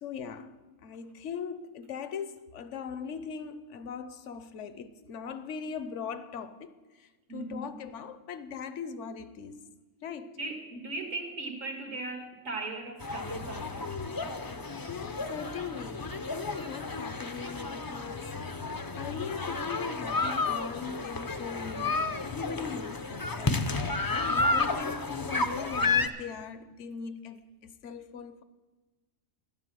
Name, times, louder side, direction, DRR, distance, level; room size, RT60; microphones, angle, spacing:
voice 1, 0.0-9.6 10.0-10.4 14.9-18.3 19.0-28.4, left 6 dB, 70° left, 1.1 m, -40 dB
voice 2, 7.3-7.7 10.4-14.0 18.1-18.3 24.2-24.5, right 3 dB, 80° right, 2.3 m, -38 dB
sound 1, 13.0-26.1, left 3 dB, 30° left, 0.4 m, -32 dB
12.0 x 9.9 x 7.6 m
omnidirectional pair, 1.3 m